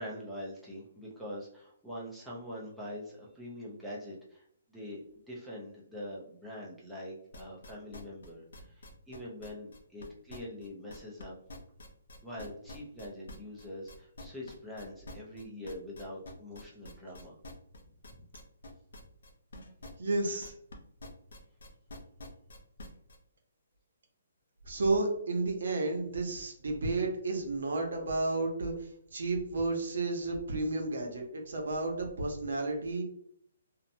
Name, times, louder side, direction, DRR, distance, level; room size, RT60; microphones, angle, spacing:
voice 1, 0.0-11.4 12.2-17.4, left 1 dB, ahead, -7 dB, 0.5 m, -44 dB
sound 1, 7.3-11.2 11.5-20.7 21.0-23.2, left 1 dB, 75° left, 0.6 m, -47 dB
voice 2, 20.0-20.5 24.6-33.0, right 2 dB, 75° right, 2 dB, 0.8 m, -32 dB
2.8 x 2.1 x 2.6 m, 0.66 s
hypercardioid pair, 165°, 0 cm